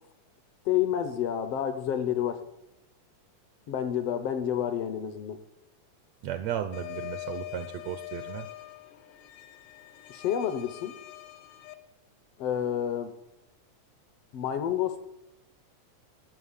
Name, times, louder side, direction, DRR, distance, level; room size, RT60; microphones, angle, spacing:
voice 1, 0.6-2.4 3.7-5.4 10.1-10.9 12.4-13.1 14.3-15.0, left 9 dB, 70° left, 9 dB, 1.5 m, -29 dB
voice 2, 6.2-8.5, right 10 dB, 80° right, 9 dB, 1.6 m, -34 dB
sound 1, 6.7-11.7, left 17 dB, 85° left, 2.4 m, -43 dB
11.0 x 7.7 x 6.7 m, 0.88 s
omnidirectional pair, 3.4 m